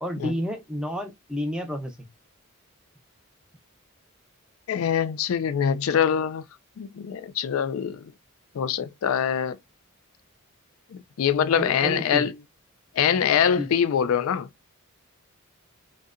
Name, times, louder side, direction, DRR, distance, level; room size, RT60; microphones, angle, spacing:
voice 1, 0.0-2.1 11.5-12.2 13.6-13.7, equal, 5° right, 0.5 m, -30 dB
voice 2, 4.7-6.4 6.8-8.1 8.5-9.6 10.9-12.3 12.9-14.5, left 8 dB, 75° left, 0.3 m, -24 dB
2.7 x 2.1 x 2.4 m
head